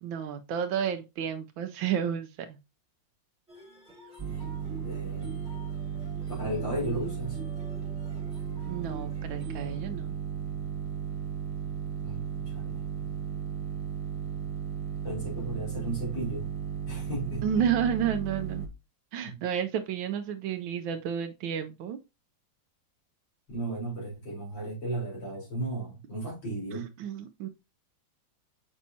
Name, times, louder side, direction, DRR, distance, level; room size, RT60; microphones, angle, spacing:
voice 1, 0.0-2.6 8.7-10.2 17.4-18.7 19.1-22.0 26.7-27.5, right 8 dB, 85° right, 1.4 m, -31 dB
sound 1, 3.5-9.8, equal, 5° right, 2.8 m, -48 dB
sound 2, 4.2-18.7, right 7 dB, 25° right, 0.8 m, -35 dB
voice 2, 4.8-5.5 6.4-7.4 12.0-12.8 15.0-16.5 16.9-17.4 19.2-19.4 23.5-26.9, right 1 dB, 70° left, 4.7 m, -35 dB
7.2 x 5.4 x 2.7 m
omnidirectional pair, 2.1 m